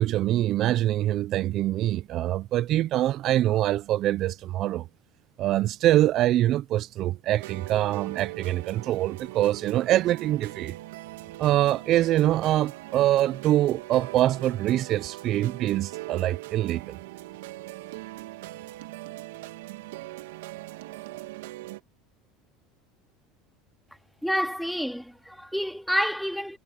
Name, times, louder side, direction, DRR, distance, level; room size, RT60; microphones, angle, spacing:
voice 1, 0.0-4.9 5.4-10.8 11.4-17.0, right 14 dB, 50° right, 0.7 m, -24 dB
sound 1, 7.4-21.8, right 18 dB, 80° right, 2.5 m, -40 dB
voice 2, 24.2-26.6, equal, ahead, 2.6 m, -28 dB
hypercardioid pair, 95°, 0 cm